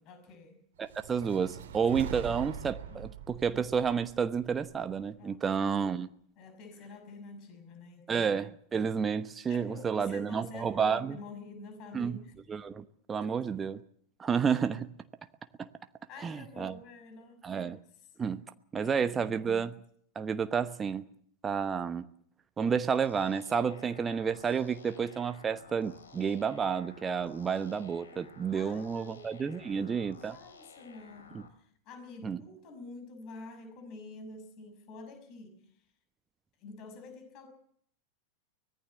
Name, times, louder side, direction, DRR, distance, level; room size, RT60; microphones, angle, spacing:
voice 1, 0.0-0.6 1.9-2.2 2.9-3.1 5.2-5.5 6.4-8.4 9.5-12.4 13.2-13.5 16.1-18.1 18.7-19.4 28.5-35.9 36.6-37.5, left 3 dB, 40° left, 8 dB, 6.0 m, -49 dB
voice 2, 0.8-6.1 8.1-11.2 11.9-12.2 12.5-13.8 14.2-14.9 15.6-15.7 16.2-16.8 17.4-17.8 18.2-18.4 18.7-19.7 20.1-21.0 21.4-22.1 22.6-30.4 31.3-31.4 32.2-32.4, right 6 dB, 20° right, 10 dB, 1.0 m, -30 dB
sound 1, 0.8-5.1, right 8 dB, 60° right, 2.0 m, -43 dB
sound 2, 22.9-31.5, left 5 dB, 70° left, 3.3 m, -54 dB
24.0 x 18.5 x 7.3 m, 0.64 s
figure-of-eight pair, 90°, 0 cm